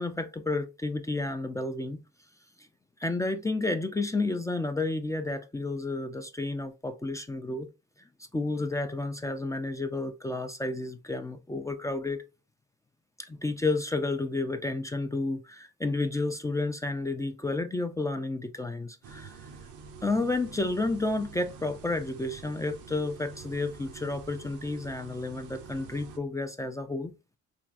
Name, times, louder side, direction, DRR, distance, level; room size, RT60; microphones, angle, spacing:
voice 1, 0.0-2.0 2.6-2.7 3.0-7.7 8.3-12.2 13.2-19.5 20.0-27.2, left 2 dB, 10° left, 0.3 m, -31 dB
sound 1, 19.0-26.2, right 5 dB, 85° right, 0.6 m, -47 dB
3.4 x 2.3 x 2.5 m
cardioid pair, 90°, 30 cm